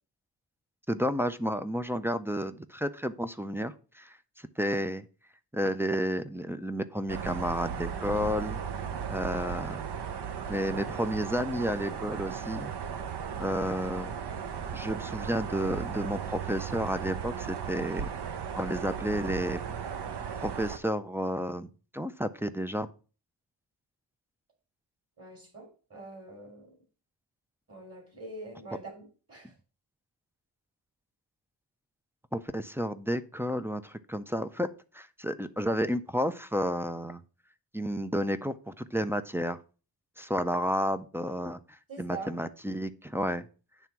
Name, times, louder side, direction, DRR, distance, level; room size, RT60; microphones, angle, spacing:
voice 1, 0.9-4.2 4.6-5.0 5.5-8.6 9.1-9.8 10.5-12.7 13.4-14.1 14.7-18.1 18.6-19.6 20.4-22.9 32.3-34.7 34.9-37.2 37.7-39.6 40.2-43.5, equal, 5° right, 8 dB, 0.3 m, -31 dB
sound 1, 7.1-20.8, right 7 dB, 65° right, 0.8 m, -36 dB
voice 2, 25.2-26.8 27.7-29.5 41.9-42.3, right 3 dB, 30° right, 0 dB, 3.5 m, -44 dB
9.1 x 3.5 x 5.8 m, 0.36 s
wide cardioid pair, 145°, 44 cm